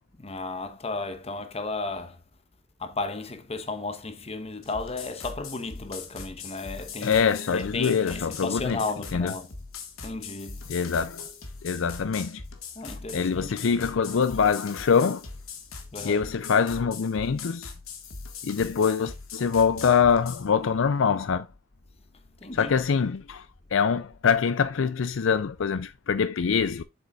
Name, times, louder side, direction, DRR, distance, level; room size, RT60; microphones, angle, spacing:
voice 1, 0.2-2.2 2.8-7.2 7.5-9.5 10.0-10.7 12.7-13.8 15.9-16.3 22.4-22.7, left 3 dB, 30° left, 1.0 m, -34 dB
sound 1, 4.6-20.5, left 5 dB, 80° left, 1.7 m, -41 dB
voice 2, 7.0-8.8 9.1-9.3 10.7-11.2 11.6-12.4 13.1-15.2 16.0-17.7 18.4-21.5 22.6-23.4 23.7-26.8, left 6 dB, 65° left, 0.4 m, -24 dB
7.9 x 6.8 x 2.4 m
head